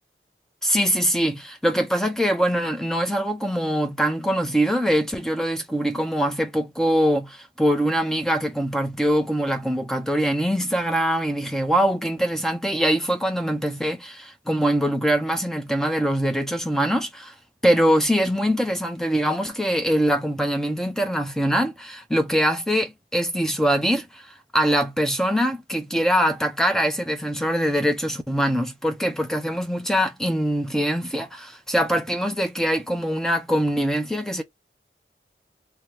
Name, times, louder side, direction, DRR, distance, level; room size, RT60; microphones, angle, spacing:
voice 1, 0.6-17.3 17.6-34.4, equal, 5° left, 0.4 m, -23 dB
2.6 x 2.2 x 3.1 m
head